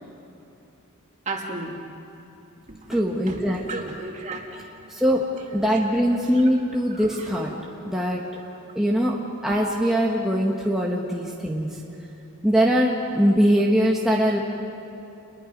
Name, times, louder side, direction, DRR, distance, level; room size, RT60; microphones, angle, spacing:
voice 1, 1.3-1.8 2.7-3.0 3.3-4.6 9.5-9.6, right 3 dB, 35° right, 0 dB, 2.6 m, -34 dB
voice 2, 2.9-3.9 4.9-5.2 5.5-7.5 7.8-8.2 8.7-9.2 9.4-11.8 12.4-14.4, equal, ahead, -3 dB, 1.5 m, -22 dB
29.5 x 21.5 x 5.4 m, 3.0 s
head